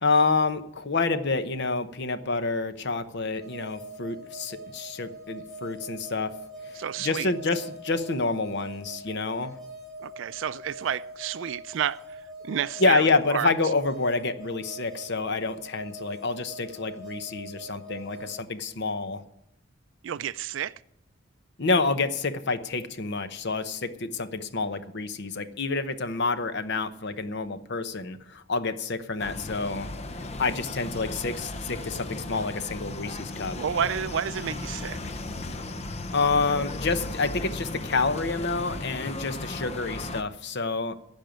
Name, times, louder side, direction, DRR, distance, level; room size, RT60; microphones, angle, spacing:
voice 1, 0.0-6.3 6.6-9.6 12.8-19.2 21.6-29.9 30.4-33.6 36.1-41.0, left 3 dB, 55° left, 0.9 m, -28 dB
sound 1, 3.4-18.4, right 1 dB, ahead, 2.5 m, -43 dB
voice 2, 6.7-7.3 10.0-13.5 20.0-20.7 33.6-35.0, right 8 dB, 65° right, 0.4 m, -30 dB
sound 2, 29.2-40.2, left 2 dB, 30° left, 0.6 m, -36 dB
15.5 x 5.5 x 9.0 m
head